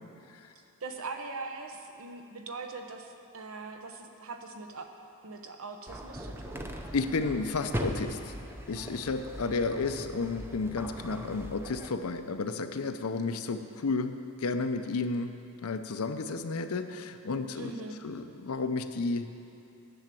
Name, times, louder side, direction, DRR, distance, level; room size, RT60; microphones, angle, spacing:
voice 1, 0.8-4.9 5.2-6.6 17.6-18.0, right 3 dB, 65° right, 5 dB, 1.0 m, -41 dB
sound 1, 5.9-11.9, equal, 10° right, 0.6 m, -39 dB
voice 2, 6.9-8.3 8.7-15.3 15.6-17.7 18.0-19.3, left 3 dB, 75° left, 9 dB, 0.6 m, -32 dB
10.5 x 7.1 x 7.6 m, 2.6 s
head